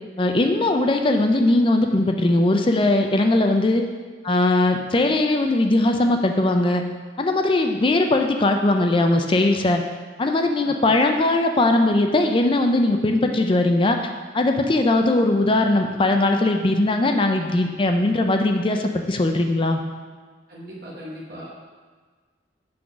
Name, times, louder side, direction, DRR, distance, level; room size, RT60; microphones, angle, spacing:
voice 1, 0.2-3.8 4.2-6.8 7.2-9.8 10.2-14.1 14.3-19.8, left 2 dB, 30° left, 4 dB, 0.5 m, -20 dB
voice 2, 20.5-21.6, equal, 60° right, -5 dB, 1.1 m, -38 dB
6.1 x 3.8 x 5.9 m, 1.5 s
head